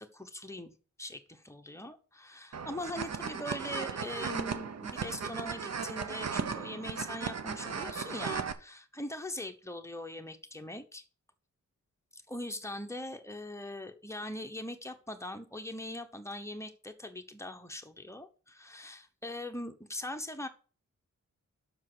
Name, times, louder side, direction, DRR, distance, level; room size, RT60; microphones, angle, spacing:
voice 1, 0.1-0.7 1.0-11.0 12.1-20.5, left 1 dB, 10° left, 6 dB, 1.0 m, -41 dB
sound 1, 2.5-8.5, right 6 dB, 60° right, 0.9 m, -36 dB
7.3 x 6.2 x 6.2 m, 0.38 s
wide cardioid pair, 120°, 29 cm